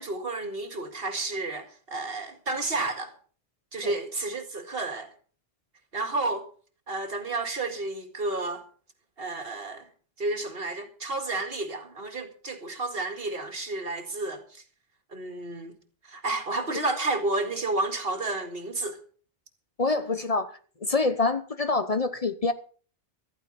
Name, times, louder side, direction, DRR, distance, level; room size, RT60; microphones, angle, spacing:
voice 1, 0.0-3.1 3.7-5.1 5.9-6.5 6.9-8.7 9.2-9.9 10.2-14.6 15.1-15.8 16.0-19.0, right 2 dB, 65° right, 2.3 m, -31 dB
voice 2, 19.8-20.5 20.8-22.5, left 3 dB, 40° left, 0.9 m, -26 dB
14.5 x 14.0 x 4.2 m
omnidirectional pair, 1.0 m